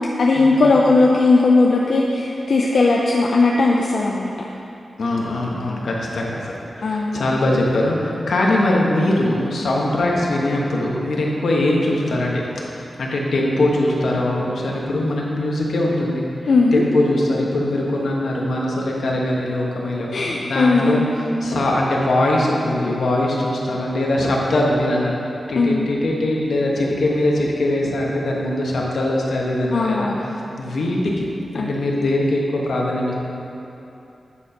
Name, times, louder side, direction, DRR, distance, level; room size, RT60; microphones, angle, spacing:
voice 1, 0.2-4.3 6.8-7.2 16.5-16.8 20.1-21.1 25.5-25.9 29.7-30.2 31.5-31.7, left 3 dB, 60° left, -2 dB, 0.5 m, -17 dB
voice 2, 5.0-6.5 6.8-12.4 12.7-16.2 16.7-21.0 21.4-31.3 31.5-33.1, left 1 dB, 80° left, -3 dB, 1.1 m, -21 dB
9.0 x 4.3 x 5.1 m, 2.8 s
wide cardioid pair, 155°, 0 cm